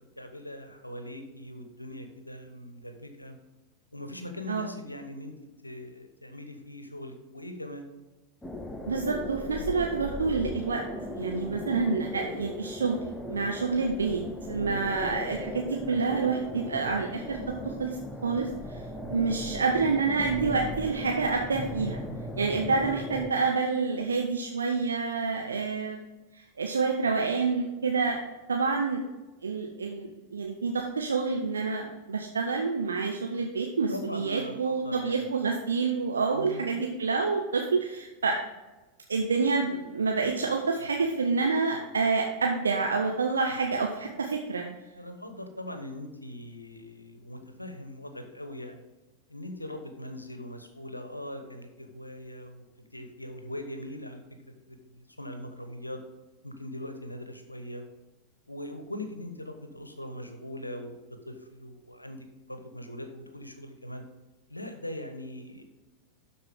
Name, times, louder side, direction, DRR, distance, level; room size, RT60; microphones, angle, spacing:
voice 1, 0.0-3.4 3.9-5.3 5.6-7.9 14.5-14.9 33.9-35.3 36.3-36.8 44.9-48.8 49.3-56.0 56.4-57.9 58.5-64.0 64.5-65.6, left 1 dB, 85° left, 7 dB, 1.0 m, -41 dB
sound 1, 8.4-23.3, left 1 dB, 10° left, 0.7 m, -38 dB
voice 2, 8.9-10.8 11.1-14.2 14.5-17.4 17.6-18.8 19.1-22.0 22.4-26.0 26.6-28.2 28.5-29.0 29.4-38.4 39.1-44.7, right 4 dB, 70° right, 2 dB, 0.7 m, -28 dB
12.0 x 4.3 x 3.6 m, 1.1 s
figure-of-eight pair, 90°, 0 cm